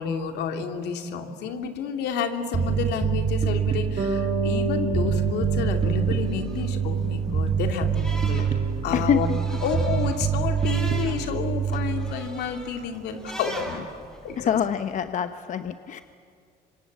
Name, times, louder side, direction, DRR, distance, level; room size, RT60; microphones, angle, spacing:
voice 1, 0.0-8.5 8.8-9.3 9.6-13.8 14.2-14.5, left 6 dB, 80° left, 5 dB, 2.6 m, -30 dB
Bass guitar, 2.5-12.1, right 7 dB, 35° right, 1.7 m, -25 dB
Bass guitar 2, 4.0-8.1, right 2 dB, 60° right, 6.3 m, -31 dB
sound 1, 5.2-15.0, equal, 5° left, 6.5 m, -43 dB
voice 2, 8.9-9.4 14.4-16.0, left 8 dB, 50° left, 9 dB, 0.9 m, -25 dB
26.0 x 25.5 x 8.5 m, 2.2 s
cardioid pair, 110°, 17 cm